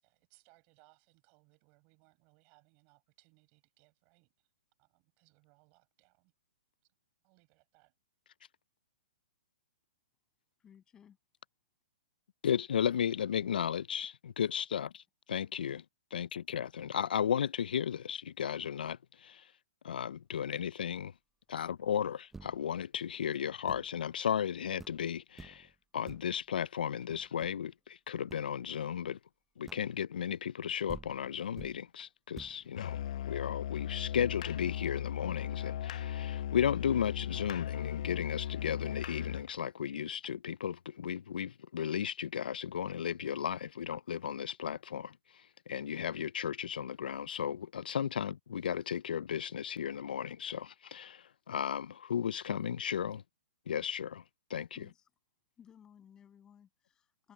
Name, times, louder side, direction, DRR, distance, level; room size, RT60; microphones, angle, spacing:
voice 1, 0.0-4.3 4.8-6.3 7.2-7.9, right 32 dB, 30° right, 6.7 m, -68 dB
voice 2, 10.6-11.2 15.7-15.8 54.7-55.1 55.6-57.3, left 8 dB, 15° left, 6.8 m, -59 dB
voice 3, 12.4-15.0 15.3-15.8 16.1-19.4 19.8-21.1 21.5-25.7 25.9-29.2 29.6-45.2 45.7-53.2 53.7-54.2 54.5-54.8, left 8 dB, 85° left, 0.4 m, -35 dB
sound 1, 22.3-22.8 23.7-24.0 24.4-24.5 24.8-25.1 25.4-25.7 26.1-26.4 27.1-27.7 28.3-28.5 29.7-30.0 30.6-30.7 30.9-31.9 32.4-32.7, right 3 dB, 5° right, 0.6 m, -50 dB
Musical instrument, 32.8-39.5, left 11 dB, 50° left, 0.6 m, -37 dB
hypercardioid pair, 165°, 5 cm